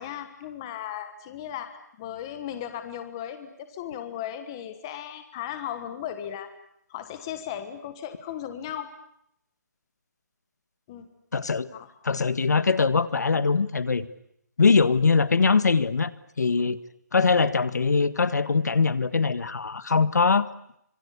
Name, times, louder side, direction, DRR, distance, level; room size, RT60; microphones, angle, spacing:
voice 1, 0.0-6.5 6.9-9.0 10.9-11.1 11.7-11.9, left 10 dB, 15° left, 9 dB, 1.4 m, -36 dB
voice 2, 11.3-11.7 12.0-14.1 14.6-16.1 16.4-16.8 17.1-20.5, left 4 dB, 65° left, 15 dB, 1.7 m, -22 dB
26.0 x 25.0 x 8.4 m, 0.74 s
hypercardioid pair, 180°, 10 cm